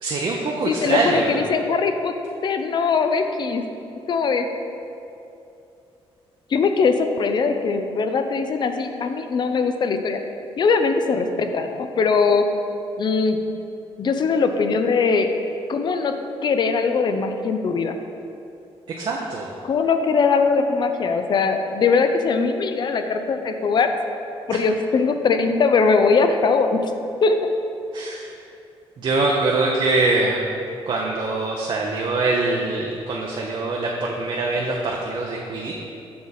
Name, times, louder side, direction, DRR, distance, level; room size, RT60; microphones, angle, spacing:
voice 1, 0.0-1.5 19.0-19.5 27.9-28.4 29.0-30.4 30.9-35.8, right 3 dB, 50° right, -1 dB, 0.7 m, -23 dB
voice 2, 0.7-2.1 2.4-3.6 4.1-4.5 6.5-10.2 10.6-12.4 13.0-13.4 14.0-15.3 15.7-16.2 16.4-17.9 19.6-23.9 24.5-26.9 27.2-27.5, left 4 dB, 45° left, 7 dB, 0.5 m, -21 dB
7.6 x 5.5 x 4.1 m, 2.7 s
cardioid pair, 120°, 10 cm